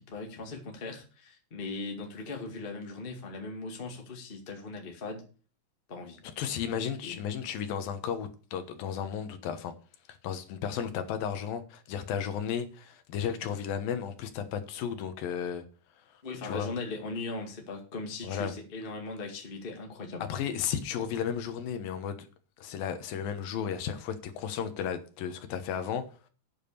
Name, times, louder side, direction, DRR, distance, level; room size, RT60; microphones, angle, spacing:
voice 1, 0.0-5.2 5.9-6.2 7.0-7.2 16.2-20.2, left 3 dB, 20° left, 1.5 m, -39 dB
voice 2, 6.4-9.7 10.2-15.6 16.4-16.7 18.2-18.5 20.2-22.3 22.6-26.1, left 8 dB, 80° left, 2.9 m, -34 dB
9.0 x 7.4 x 6.7 m
omnidirectional pair, 4.1 m